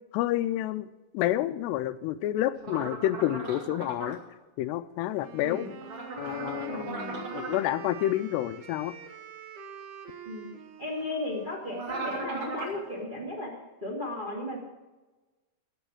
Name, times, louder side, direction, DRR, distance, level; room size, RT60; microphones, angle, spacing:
voice 1, 0.1-4.2 4.6-5.7 6.2-7.0 7.3-8.9, left 13 dB, 85° left, 13 dB, 2.5 m, -29 dB
sound 1, 2.6-4.1 5.8-7.6 11.7-12.8, right 3 dB, 40° right, 2.6 m, -37 dB
Wind instrument woodwind instrument, 5.2-13.1, right 6 dB, 70° right, 2.8 m, -45 dB
voice 2, 5.4-5.7 6.7-7.2 10.2-10.5 10.8-14.6, left 2 dB, 20° right, -1 dB, 1.4 m, -35 dB
15.0 x 6.3 x 7.6 m, 1.2 s
omnidirectional pair, 5.1 m